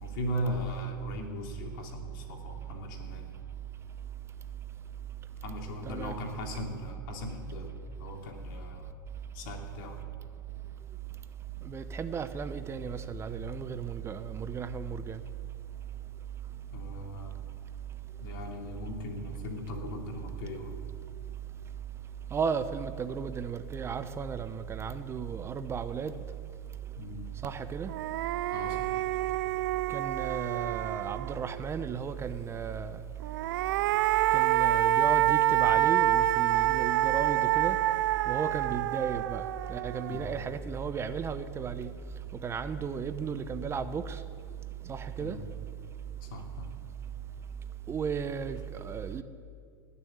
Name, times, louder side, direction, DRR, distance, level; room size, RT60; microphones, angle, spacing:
voice 1, 0.0-3.3 5.4-7.7 8.0-8.9 9.3-10.1 16.7-17.4 18.2-20.7 27.0-27.3 28.5-29.0 40.1-40.4 45.2-45.4 46.2-46.7, left 1 dB, 65° left, 2 dB, 3.0 m, -38 dB
voice 2, 5.8-6.2 6.5-6.6 11.6-15.2 22.3-26.2 27.4-27.9 29.9-33.0 34.3-37.8 38.3-39.4 39.7-41.9 42.4-44.2 44.9-45.4 47.9-49.2, right 6 dB, 20° right, 11 dB, 0.8 m, -34 dB
sound 1, 27.4-27.5 27.9-31.6 33.2-40.5, right 14 dB, 70° right, 0.4 m, -27 dB
19.0 x 7.0 x 8.9 m, 2.3 s
hypercardioid pair, 115°, 11 cm